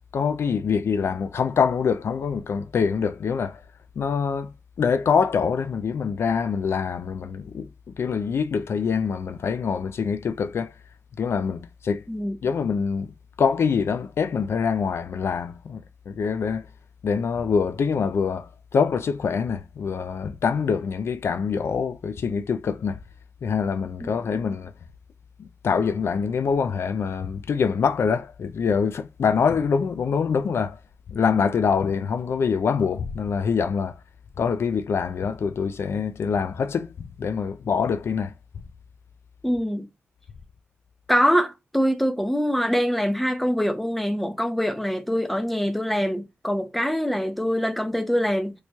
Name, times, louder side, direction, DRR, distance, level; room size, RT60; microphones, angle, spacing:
voice 1, 0.1-3.6 4.0-4.5 4.8-10.7 11.2-12.0 12.4-16.6 17.0-23.0 23.4-24.7 25.6-30.8 31.1-33.9 34.4-36.9 37.2-38.3, left 6 dB, 70° left, 0.3 m, -25 dB
voice 2, 39.4-39.9 41.1-48.5, equal, 5° left, 0.5 m, -24 dB
4.4 x 2.9 x 2.2 m
wide cardioid pair, 120°, 5 cm